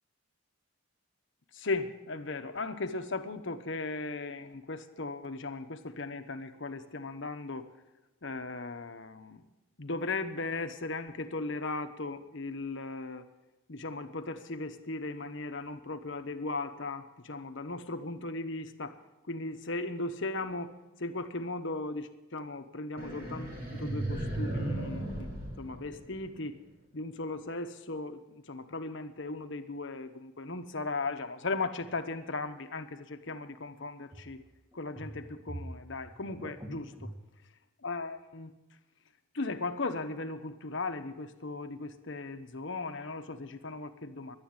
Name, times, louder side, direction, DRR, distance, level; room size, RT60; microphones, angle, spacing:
voice 1, 1.5-7.7 8.2-9.4 9.8-13.2 13.7-19.0 19.3-20.7 21.0-25.3 25.6-26.6 26.9-34.4 34.7-37.1 37.8-38.5 39.3-44.4, left 3 dB, 55° left, 8 dB, 1.0 m, -37 dB
sound 1, 23.0-26.4, right 1 dB, 45° right, 3.6 m, -36 dB
sound 2, 31.8-31.9 34.1-34.4 34.7-37.2, right 1 dB, 15° right, 1.5 m, -45 dB
11.0 x 10.5 x 8.9 m, 1.0 s
head